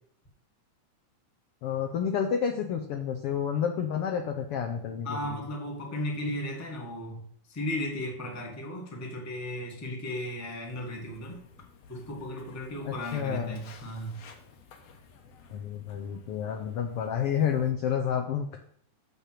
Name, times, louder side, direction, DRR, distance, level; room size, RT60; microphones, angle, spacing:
voice 1, 1.6-5.4 12.8-13.5 15.5-18.6, left 8 dB, 85° left, 4 dB, 1.2 m, -30 dB
voice 2, 5.0-7.2 7.5-11.4 11.9-14.2, left 1 dB, 15° left, 1 dB, 0.5 m, -35 dB
Walk footsteps, 10.7-17.7, left 5 dB, 65° left, 1.9 m, -54 dB
6.9 x 5.8 x 7.5 m, 0.66 s
omnidirectional pair, 3.6 m